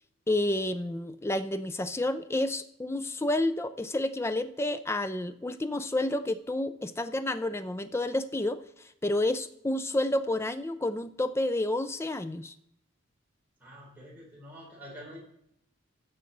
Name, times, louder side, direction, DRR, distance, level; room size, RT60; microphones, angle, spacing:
voice 1, 0.3-12.5, left 1 dB, 15° left, 11 dB, 0.4 m, -30 dB
voice 2, 13.6-15.2, equal, 10° right, -6 dB, 3.7 m, -47 dB
14.5 x 6.4 x 4.0 m, 0.76 s
head